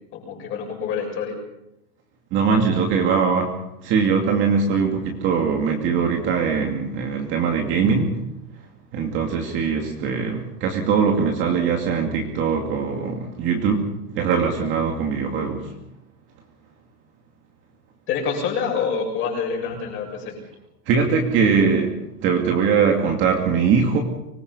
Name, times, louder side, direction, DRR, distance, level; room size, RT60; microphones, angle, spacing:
voice 1, 0.1-1.4 18.1-20.3, left 6 dB, 25° left, 1 dB, 7.1 m, -26 dB
voice 2, 2.3-3.5 3.8-8.2 8.9-15.7 20.9-21.9 22.2-24.0, right 5 dB, 25° right, 2 dB, 2.5 m, -21 dB
25.0 x 20.5 x 5.5 m, 0.89 s
supercardioid pair, 170°, 46 cm